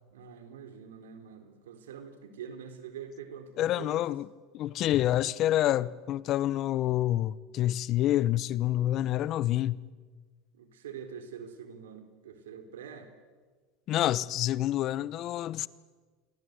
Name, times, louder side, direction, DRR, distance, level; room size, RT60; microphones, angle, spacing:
voice 1, 0.1-4.1 10.5-13.1, right 7 dB, 85° right, 3.8 m, -45 dB
voice 2, 3.6-4.3 4.5-9.8 13.9-15.7, left 13 dB, 50° left, 1.0 m, -27 dB
28.5 x 22.0 x 8.0 m
hypercardioid pair, 90°, 0 cm